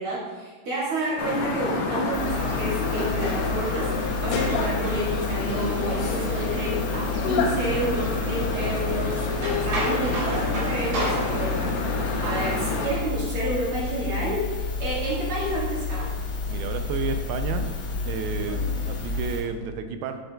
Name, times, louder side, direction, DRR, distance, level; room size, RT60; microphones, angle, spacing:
voice 1, 0.0-16.1 18.5-18.8, right 1 dB, 50° right, -7 dB, 1.7 m, -30 dB
sound 1, 1.2-12.9, left 3 dB, 85° left, 2.5 m, -28 dB
sound 2, 2.1-19.4, left 4 dB, 70° left, 2.7 m, -31 dB
sound 3, 2.2-11.7, right 1 dB, 70° right, 3.2 m, -36 dB
voice 2, 16.5-17.7 18.1-20.1, right 6 dB, 90° right, 7 dB, 2.5 m, -31 dB
7.7 x 6.4 x 2.2 m, 1.4 s
omnidirectional pair, 4.4 m